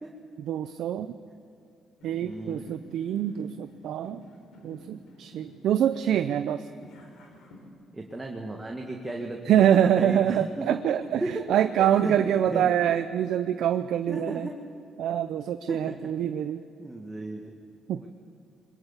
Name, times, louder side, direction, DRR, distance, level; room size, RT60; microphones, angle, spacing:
voice 1, 0.5-1.1 2.0-4.2 4.6-6.7 9.5-11.2 11.5-14.5 15.0-16.6 17.9-18.1, right 10 dB, 75° right, 10 dB, 0.6 m, -25 dB
sound 1, 2.0-7.7, left 1 dB, 80° left, 3.6 m, -51 dB
voice 2, 2.2-2.6 7.9-10.7 11.2-13.0 14.1-14.6 15.7-16.1 16.8-17.6 18.0-18.1, right 2 dB, 15° right, 0 dB, 2.0 m, -35 dB
22.0 x 19.0 x 7.3 m, 2.6 s
cardioid pair, 90°, 0 cm